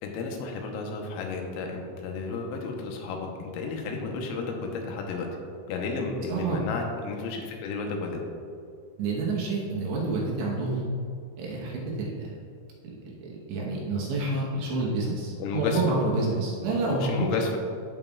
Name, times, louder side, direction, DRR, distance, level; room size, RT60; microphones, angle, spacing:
voice 1, 0.0-5.3 5.7-8.2 15.4-15.8 16.8-17.6, left 4 dB, 85° left, 1 dB, 3.5 m, -32 dB
voice 2, 6.3-6.6 9.0-10.9 11.4-12.3 12.8-17.3, right 3 dB, 75° right, -3 dB, 3.0 m, -28 dB
14.5 x 5.4 x 2.3 m, 2.5 s
omnidirectional pair, 5.9 m